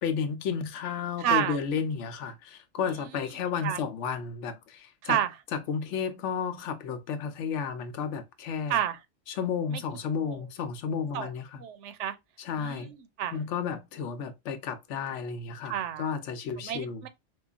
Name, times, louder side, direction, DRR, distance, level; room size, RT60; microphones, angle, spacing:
voice 1, 0.0-5.2 5.5-8.8 9.3-11.6 12.4-12.9 13.3-17.1, left 6 dB, 75° left, 1.0 m, -32 dB
voice 2, 1.2-1.6 3.6-3.8 5.0-5.3 8.7-9.0 10.3-10.4 11.1-11.3 11.6-12.2 12.6-13.4 15.7-16.1 16.6-17.1, right 10 dB, 80° right, 0.9 m, -30 dB
4.6 x 2.4 x 2.3 m
omnidirectional pair, 1.2 m